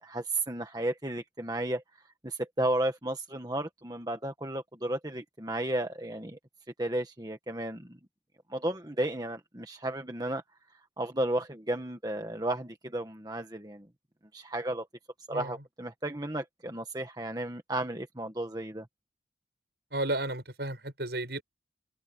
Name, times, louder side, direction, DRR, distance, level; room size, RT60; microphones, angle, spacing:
voice 1, 0.0-1.8 2.2-6.4 6.8-8.0 8.5-10.4 11.0-13.9 14.3-14.9 15.3-18.9, right 1 dB, 20° right, 1.6 m, -33 dB
voice 2, 15.3-15.6 19.9-21.4, right 2 dB, 70° right, 7.2 m, -33 dB
head